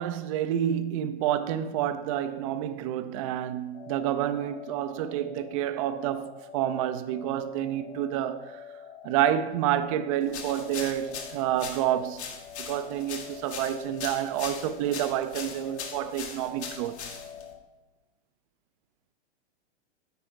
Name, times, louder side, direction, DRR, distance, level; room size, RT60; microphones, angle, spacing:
voice 1, 0.0-8.6 9.0-12.3 12.6-17.0, right 11 dB, 30° right, 0.4 m, -29 dB
sound 1, 3.7-17.6, left 8 dB, 25° left, 0.6 m, -47 dB
sound 2, 10.3-17.5, left 6 dB, 75° left, 1.5 m, -40 dB
9.0 x 4.9 x 4.5 m
hypercardioid pair, 130°, 34 cm